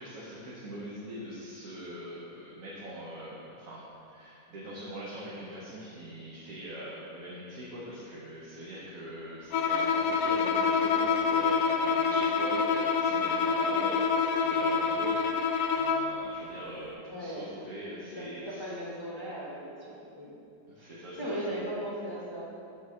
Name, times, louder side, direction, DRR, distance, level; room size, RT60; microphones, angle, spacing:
voice 1, 0.0-18.7 20.7-21.4, equal, 65° right, -6 dB, 1.4 m, -42 dB
Bowed string instrument, 9.5-16.2, left 5 dB, 70° left, 0.9 m, -27 dB
voice 2, 17.1-17.5 18.2-20.3 20.8-20.9 21.2-22.5, right 1 dB, 20° left, -7 dB, 0.8 m, -37 dB
5.8 x 4.3 x 6.3 m, 2.6 s
omnidirectional pair, 1.7 m